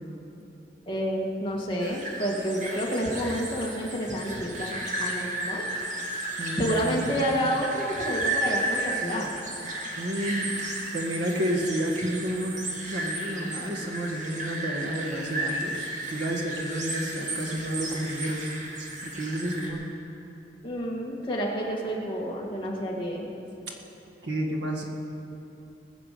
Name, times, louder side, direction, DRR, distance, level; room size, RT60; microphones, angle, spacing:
voice 1, 0.9-5.7 6.6-9.3 20.6-23.3, equal, 30° left, -3 dB, 2.0 m, -29 dB
sound 1, 1.8-19.7, right 1 dB, 45° right, 2.0 m, -33 dB
voice 2, 6.4-6.9 10.0-12.5 12.9-18.5 18.8-19.8 24.2-24.8, right 1 dB, 75° right, 1 dB, 2.0 m, -31 dB
20.5 x 7.3 x 6.7 m, 3.0 s
head